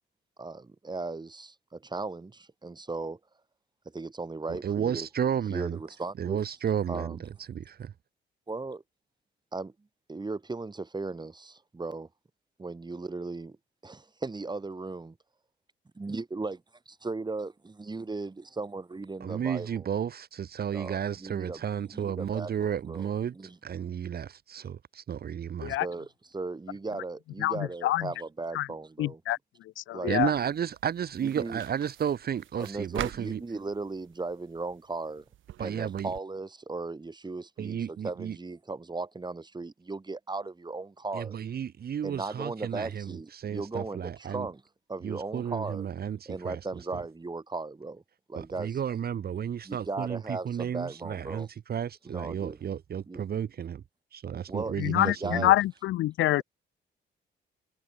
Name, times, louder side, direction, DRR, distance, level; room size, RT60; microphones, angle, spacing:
voice 1, 0.4-3.2 3.9-5.1 5.5-6.4 6.9-7.2 8.5-8.8 9.5-9.7 10.1-12.1 12.6-13.6 13.8-15.2 16.0-19.9 20.7-21.6 21.9-23.6 25.8-26.1 26.3-29.2 29.9-30.2 31.2-31.6 32.6-35.2 35.6-41.3 42.0-44.6 44.9-45.9 46.3-48.0 48.3-48.8 49.6-51.5 52.0-52.6 53.1-53.2 54.5-55.6, right 3 dB, 20° right, 4.0 m, -37 dB
voice 2, 4.5-5.8 6.2-7.9 19.2-23.3 23.6-25.8 30.0-33.4 35.6-36.1 37.6-38.4 41.1-44.5 45.0-46.6 46.9-47.0 48.3-53.8 54.1-55.5, right 8 dB, 50° right, 1.4 m, -32 dB
voice 3, 27.4-28.1 28.5-28.7 29.0-29.4 29.8-30.3 54.8-56.4, left 15 dB, 80° left, 0.7 m, -26 dB
sound 1, 30.1-36.2, right 13 dB, 75° right, 1.7 m, -45 dB
cardioid pair, 90°, 20 cm